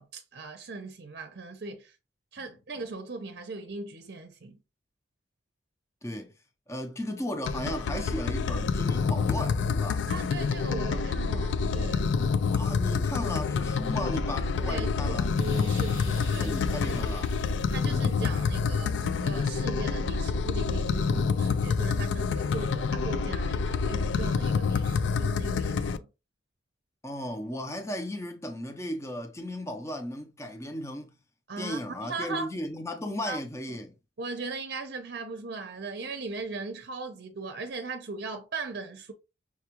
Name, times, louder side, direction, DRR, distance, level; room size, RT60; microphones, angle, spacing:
voice 1, 0.0-1.9 2.3-4.6 10.1-12.1 14.6-16.5 16.9-17.0 17.7-26.1 31.5-32.5 33.2-33.4 34.2-39.1, right 3 dB, 55° right, 0.6 m, -38 dB
voice 2, 6.0-6.3 6.7-10.1 12.5-15.3 16.3-17.3 27.0-31.1 31.6-34.0, left 1 dB, 15° left, 0.5 m, -35 dB
sound 1, 7.5-26.0, left 5 dB, 70° left, 0.3 m, -27 dB
sound 2, 15.4-20.5, left 1 dB, 90° left, 1.2 m, -45 dB
5.8 x 2.3 x 2.9 m
head